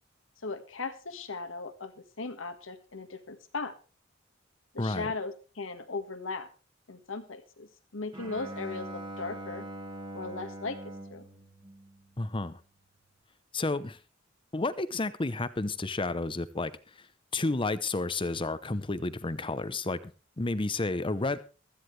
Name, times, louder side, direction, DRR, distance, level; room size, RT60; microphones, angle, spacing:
voice 1, 0.4-3.7 4.7-6.5 6.9-9.7 10.1-11.3, left 3 dB, 85° left, 8 dB, 1.7 m, -38 dB
voice 2, 4.8-5.1 12.2-12.6 13.5-14.0 14.5-16.7 17.0-17.1 17.3-20.1 20.4-21.4, left 2 dB, 25° left, 14 dB, 0.8 m, -31 dB
Bowed string instrument, 8.1-12.5, right 1 dB, 25° right, 2.0 m, -43 dB
16.0 x 13.0 x 3.3 m, 0.34 s
head